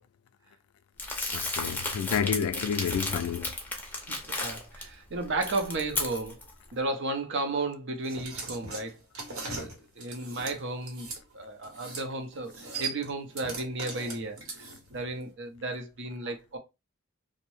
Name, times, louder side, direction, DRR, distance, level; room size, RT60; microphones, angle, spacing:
Crumpling crinkling, 1.0-4.8 5.2-6.5, left 2 dB, 10° left, 0.5 m, -34 dB
voice 1, 1.3-3.5, left 7 dB, 85° left, 0.3 m, -30 dB
voice 2, 4.1-6.4 6.7-9.0 9.3-11.1 11.3-16.6, right 2 dB, 55° right, 0.5 m, -34 dB
sound 1, 8.0-11.2 11.6-12.1 12.3-15.0, right 3 dB, 75° right, 0.9 m, -39 dB
2.7 x 2.0 x 3.0 m
head